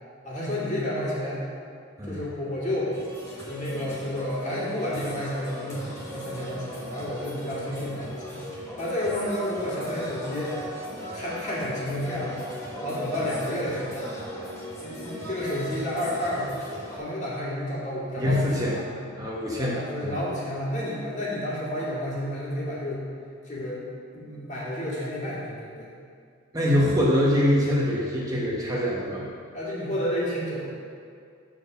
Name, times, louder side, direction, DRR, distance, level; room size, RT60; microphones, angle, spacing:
voice 1, 0.2-1.4 2.1-2.9 3.5-10.5 11.1-12.5 12.8-14.1 14.8-18.9 19.6-23.0 23.4-23.8 24.1-25.9 29.5-30.6, left 1 dB, 35° left, -7 dB, 2.1 m, -31 dB
sound 1, 2.9-17.0, equal, 15° left, 1.2 m, -37 dB
voice 2, 18.2-18.7 19.2-20.1 26.5-29.3, equal, 15° right, -5 dB, 0.9 m, -24 dB
7.4 x 4.6 x 6.5 m, 2.2 s
head